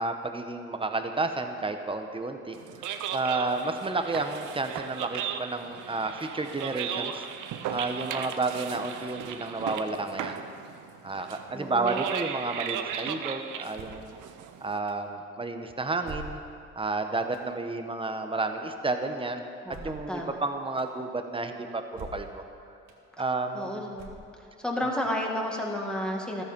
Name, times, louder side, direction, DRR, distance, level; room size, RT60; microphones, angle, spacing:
voice 1, 0.0-7.2 7.7-10.4 11.0-14.1 14.6-16.4 16.7-19.4 19.8-22.4 23.2-23.8, right 3 dB, 15° right, 6 dB, 1.2 m, -31 dB
sound 1, 2.5-14.8, right 8 dB, 80° right, 0.9 m, -36 dB
voice 2, 11.5-12.0 19.6-20.4 23.5-24.1 24.4-26.4, left 1 dB, 5° left, -1 dB, 2.3 m, -32 dB
sound 2, 13.7-14.1 14.9-15.0 16.0-16.7 17.3-17.5 19.7-20.1 20.8-20.9 21.9-22.4 22.9-23.0 23.9-24.5, right 3 dB, 65° right, 1.8 m, -43 dB
14.0 x 13.0 x 5.4 m, 2.5 s
cardioid pair, 90°, 30 cm